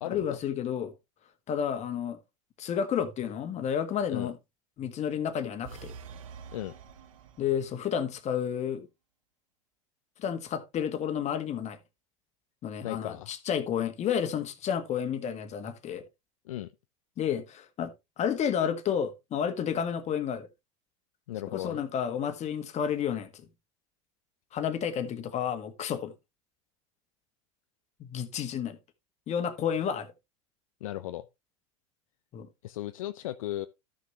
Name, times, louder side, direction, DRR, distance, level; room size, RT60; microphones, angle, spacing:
voice 1, 0.1-0.9 1.5-2.2 2.6-4.4 4.8-5.9 7.4-8.9 10.2-11.8 12.6-16.0 17.2-20.5 21.5-23.5 24.5-26.1 28.0-28.8 29.3-30.1 32.3-32.5, left 8 dB, 40° left, 1.6 m, -31 dB
sound 1, 5.6-7.9, right 6 dB, 80° right, 1.1 m, -47 dB
voice 2, 12.8-13.3 16.5-16.7 21.3-21.8 30.8-31.3 32.6-33.7, left 14 dB, 80° left, 0.5 m, -36 dB
12.5 x 6.3 x 3.0 m
hypercardioid pair, 85°, 18 cm